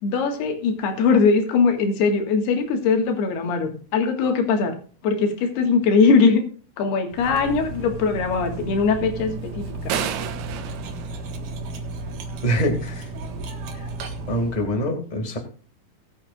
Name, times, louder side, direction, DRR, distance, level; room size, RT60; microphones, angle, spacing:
voice 1, 0.0-4.8 5.0-6.4 6.8-9.9, left 4 dB, 80° left, 4 dB, 3.8 m, -21 dB
Cutlery silverware, 7.1-14.8, right 2 dB, 60° right, 2.8 m, -34 dB
sound 1, 9.9-12.1, right 8 dB, 90° right, 3.1 m, -31 dB
voice 2, 12.4-13.1 13.7-13.9 14.3-15.4, equal, 20° left, 4 dB, 1.2 m, -25 dB
20.5 x 8.6 x 2.5 m, 0.41 s
omnidirectional pair, 4.7 m